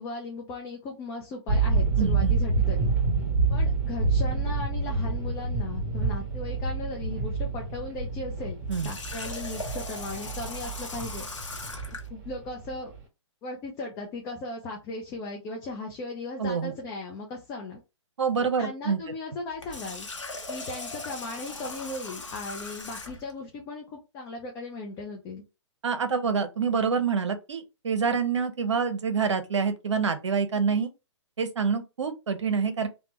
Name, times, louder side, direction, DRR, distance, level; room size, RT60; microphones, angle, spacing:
voice 1, 0.0-2.9 3.5-11.6 11.9-12.9 13.4-17.8 18.6-20.1 20.5-25.4, left 2 dB, 20° left, 0.6 m, -37 dB
sound 1, 1.5-13.0, right 4 dB, 35° right, 1.8 m, -28 dB
voice 2, 2.0-2.3 8.7-8.9 16.4-16.7 18.2-19.0 25.8-30.9 31.4-32.9, right 5 dB, 70° right, 0.7 m, -26 dB
Water tap faucet, 8.7-12.1 19.5-23.3, left 2 dB, 85° left, 0.9 m, -39 dB
3.4 x 2.2 x 2.8 m
figure-of-eight pair, 125°, 16 cm